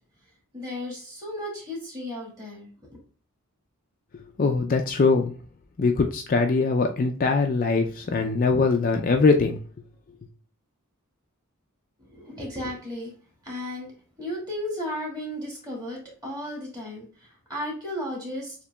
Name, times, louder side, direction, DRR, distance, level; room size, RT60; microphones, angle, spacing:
voice 1, 0.5-3.0 12.0-13.1 13.4-13.9 14.2-18.6, left 1 dB, 20° right, -3 dB, 2.0 m, -34 dB
voice 2, 4.1-5.4 5.8-9.6, left 4 dB, 40° left, 4 dB, 0.4 m, -22 dB
6.8 x 2.8 x 2.2 m, 0.41 s
head